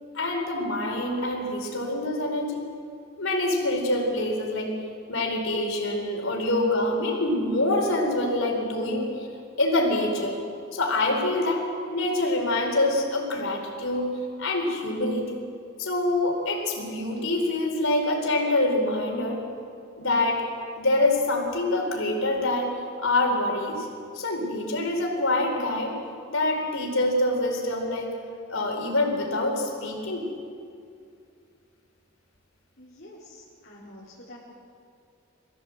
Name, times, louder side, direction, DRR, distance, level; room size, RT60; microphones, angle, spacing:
voice 1, 0.1-2.6 3.2-4.7 5.1-9.3 9.6-10.4 10.7-11.6 11.9-14.1 14.4-15.3 15.8-19.4 20.0-20.4 20.8-22.7 23.0-23.9 24.1-25.9 26.3-28.1 28.5-30.3, left 2 dB, 80° left, 1 dB, 4.4 m, -25 dB
voice 2, 32.8-34.4, left 1 dB, 55° left, -7 dB, 4.0 m, -47 dB
24.5 x 15.0 x 7.9 m, 2.4 s
head